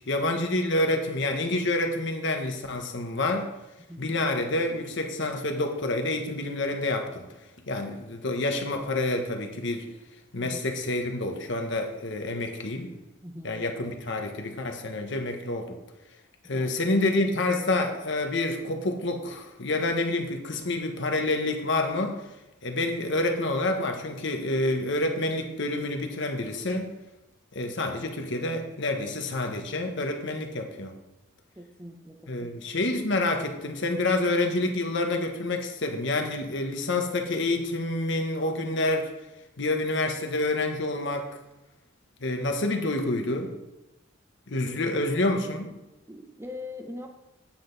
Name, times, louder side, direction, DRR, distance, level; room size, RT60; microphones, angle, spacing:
voice 1, 0.1-3.5 4.0-7.2 7.7-9.9 10.3-12.9 13.4-15.7 16.5-22.2 22.6-26.9 27.5-30.9 32.3-39.1 39.6-41.3 42.2-43.5 44.5-45.7, left 2 dB, 60° left, 4 dB, 1.1 m, -28 dB
voice 2, 13.2-13.6 16.5-16.7 31.6-32.5 46.1-47.1, left 2 dB, 15° right, 3 dB, 0.7 m, -41 dB
8.7 x 7.7 x 4.0 m, 0.98 s
head